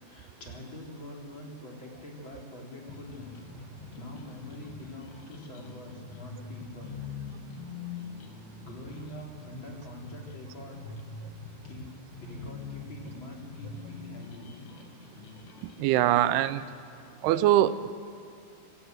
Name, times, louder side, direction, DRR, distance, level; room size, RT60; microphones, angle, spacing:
voice 1, 0.0-7.0 8.6-10.8 11.6-11.9 12.2-14.5, left 1 dB, 30° left, -1 dB, 3.4 m, -45 dB
sound 1, 2.9-15.8, left 4 dB, 85° left, 3.9 m, -44 dB
voice 2, 15.8-16.6 17.2-17.9, right 13 dB, 80° right, 14 dB, 2.6 m, -23 dB
26.0 x 15.5 x 8.0 m, 2.6 s
omnidirectional pair, 4.8 m